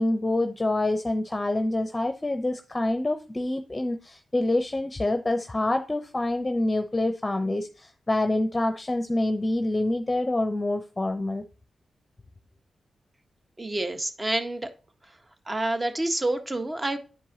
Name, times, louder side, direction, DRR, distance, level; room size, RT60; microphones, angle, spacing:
voice 1, 0.0-11.4, left 2 dB, 30° left, 7 dB, 0.7 m, -26 dB
voice 2, 13.6-14.7 15.5-17.0, right 2 dB, 30° right, 6 dB, 1.4 m, -28 dB
10.0 x 4.6 x 2.8 m, 0.36 s
supercardioid pair, 45°, 0 cm